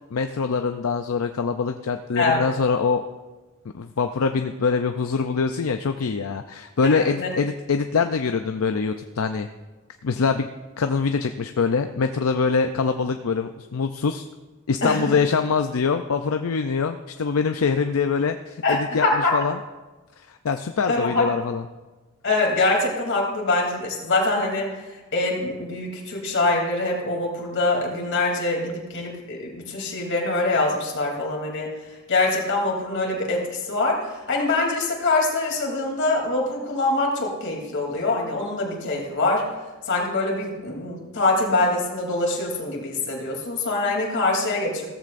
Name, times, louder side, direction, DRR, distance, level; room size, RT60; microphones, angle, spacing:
voice 1, 0.1-3.0 3.7-9.5 10.0-10.5 10.8-14.2 14.7-19.6 20.2-21.6, left 5 dB, 80° left, 7 dB, 0.5 m, -24 dB
voice 2, 2.1-2.5 6.8-7.3 14.8-15.2 18.6-19.3 20.9-21.3 22.2-24.7 25.1-31.7 32.1-39.4 39.9-44.9, left 2 dB, 60° left, -1 dB, 3.1 m, -24 dB
16.5 x 14.0 x 2.6 m, 1.2 s
head